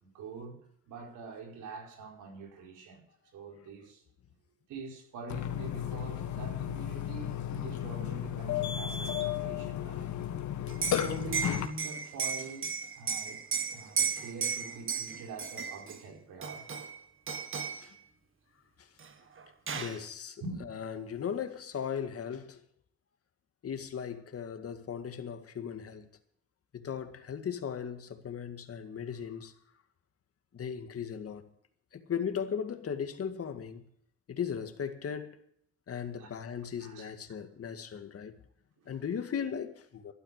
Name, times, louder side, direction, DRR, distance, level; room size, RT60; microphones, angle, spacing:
voice 1, 0.0-0.6 0.9-3.0 3.3-4.0 4.7-10.1 11.0-13.4 13.7-16.8 20.4-20.7 36.2-36.3 36.8-37.1 38.8-39.0, right 3 dB, 85° right, 4.6 m, -44 dB
Burping eructation, 5.3-11.7, left 10 dB, 70° left, 1.7 m, -34 dB
Liquid, 10.7-16.0 16.4-17.0 17.3-17.8 19.0-19.1 19.4-20.0, right 6 dB, 45° right, 1.7 m, -34 dB
voice 2, 19.7-20.4 20.7-22.6 23.6-26.1 26.7-29.5 30.5-31.5 31.9-33.9 34.3-35.4 35.9-38.4 38.9-40.1, left 7 dB, 50° left, 2.0 m, -37 dB
13.0 x 11.5 x 6.6 m
cardioid pair, 90°, 30 cm